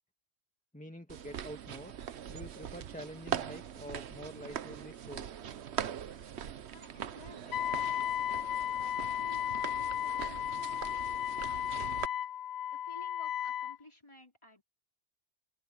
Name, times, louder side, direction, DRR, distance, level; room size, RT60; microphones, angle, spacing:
voice 1, 0.7-1.9 2.3-5.4, equal, 5° left, 1.7 m, -47 dB
sound 1, 1.1-12.1, right 9 dB, 65° right, 1.1 m, -42 dB
voice 2, 6.7-8.1 8.7-12.1 12.4-14.6, left 1 dB, 25° left, 3.9 m, -56 dB
Wind instrument woodwind instrument, 7.5-13.8, left 10 dB, 70° left, 0.4 m, -34 dB
open air
omnidirectional pair, 1.3 m